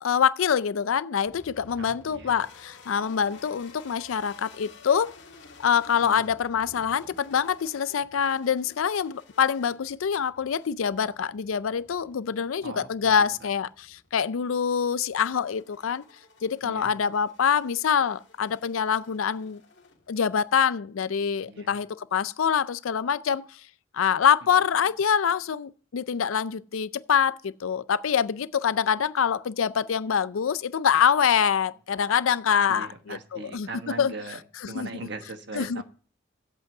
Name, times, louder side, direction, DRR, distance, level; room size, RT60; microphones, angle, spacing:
voice 1, 0.0-5.1 5.6-16.0 16.4-19.6 20.1-23.5 23.9-34.1 34.7-34.9 35.5-35.8, left 7 dB, 80° left, 0.4 m, -25 dB
sound 1, 1.3-20.5, left 3 dB, 60° left, 1.8 m, -53 dB
voice 2, 1.8-2.3 6.0-6.2 12.6-13.5 16.6-16.9 21.4-21.8 32.7-34.4 34.7-35.8, right 3 dB, 55° right, 1.4 m, -40 dB
8.3 x 8.2 x 6.5 m
head